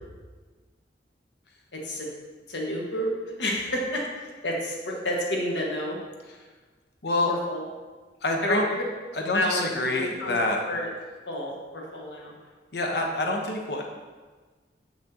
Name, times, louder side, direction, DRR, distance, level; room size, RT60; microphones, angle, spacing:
voice 1, 1.7-2.1 2.5-3.1 3.4-6.0 7.3-7.6 8.4-8.8 9.3-10.3 10.7-10.9 11.3-12.3, equal, 80° left, -2 dB, 1.5 m, -29 dB
voice 2, 7.0-7.3 8.2-8.6 9.1-10.6 12.7-13.8, left 2 dB, 65° left, 1 dB, 0.9 m, -27 dB
7.4 x 5.8 x 2.9 m, 1.4 s
head